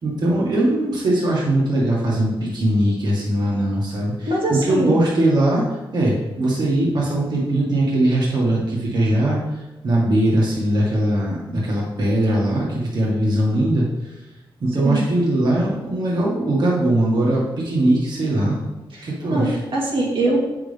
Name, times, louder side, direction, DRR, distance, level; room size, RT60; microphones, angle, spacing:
voice 1, 0.0-9.4 9.8-13.8 14.6-18.6 19.0-19.6, right 1 dB, 55° right, -4 dB, 1.7 m, -20 dB
voice 2, 4.3-5.0 14.8-15.0 18.9-20.4, right 2 dB, 75° right, -3 dB, 1.9 m, -22 dB
8.1 x 6.1 x 3.4 m, 1.1 s
wide cardioid pair, 160°, 9 cm